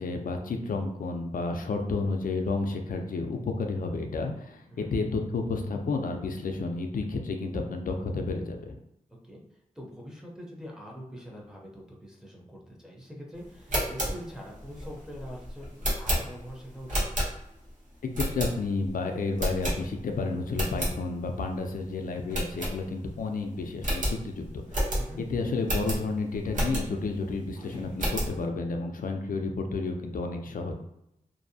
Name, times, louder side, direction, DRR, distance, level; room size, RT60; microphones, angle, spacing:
voice 1, 0.0-8.8 18.3-30.7, left 3 dB, 75° left, 4 dB, 0.4 m, -31 dB
voice 2, 9.2-17.1 24.9-25.2, equal, 5° right, -3 dB, 0.6 m, -44 dB
sound 1, 13.5-17.7 18.1-18.9 19.4-20.2 20.5-21.0 21.4-21.5 21.7-21.9 22.3-23.2 23.5-23.6 23.8-27.1 27.6-28.4, equal, 60° right, 0.9 m, -31 dB
2.6 x 2.0 x 2.6 m, 0.81 s
wide cardioid pair, 105°, 14 cm